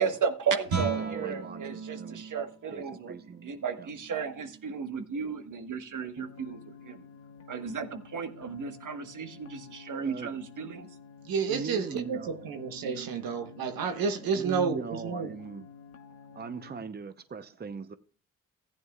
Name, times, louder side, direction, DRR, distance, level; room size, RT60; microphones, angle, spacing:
voice 1, 0.0-3.1 3.4-7.0 7.5-10.9, right 6 dB, 60° right, 1.5 m, -34 dB
Guitar, 0.6-6.2, right 4 dB, 90° right, 3.6 m, -39 dB
voice 2, 1.0-2.2 2.7-3.5 3.8-3.9 10.0-10.3 11.5-12.5 14.3-15.7 16.3-17.9, right 5 dB, 30° right, 0.8 m, -40 dB
sound 1, 6.2-16.8, left 6 dB, 45° left, 1.0 m, -51 dB
voice 3, 11.2-15.3, right 5 dB, 75° right, 1.2 m, -30 dB
15.0 x 9.3 x 2.4 m
supercardioid pair, 45°, 35 cm